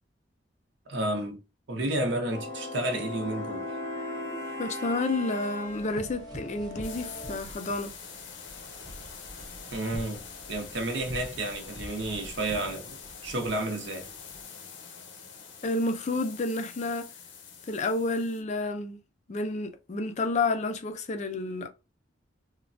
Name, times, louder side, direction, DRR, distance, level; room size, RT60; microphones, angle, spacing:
voice 1, 0.9-1.4 1.7-3.7 9.7-10.2 10.5-13.0 13.2-14.1, right 1 dB, 75° right, 0.7 m, -31 dB
sound 1, 2.3-7.3, left 1 dB, 15° left, 0.7 m, -38 dB
voice 2, 4.6-7.9 12.5-12.7 15.6-17.1 17.7-19.0 19.3-21.7, left 2 dB, 35° left, 0.4 m, -30 dB
sound 2, 5.7-14.4, equal, 20° right, 0.5 m, -46 dB
sound 3, 6.8-18.4, left 6 dB, 80° left, 0.6 m, -45 dB
3.1 x 2.2 x 2.5 m
head